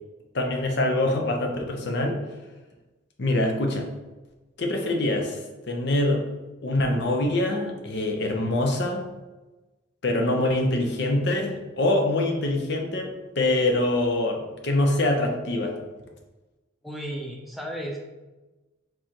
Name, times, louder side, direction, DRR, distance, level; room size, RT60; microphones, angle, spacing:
voice 1, 0.3-2.2 3.2-3.9 4.6-6.2 6.6-9.1 10.0-15.8, left 1 dB, 55° left, 2 dB, 0.7 m, -24 dB
voice 2, 16.8-18.0, equal, ahead, -1 dB, 0.6 m, -34 dB
4.7 x 3.7 x 2.9 m, 1.1 s
head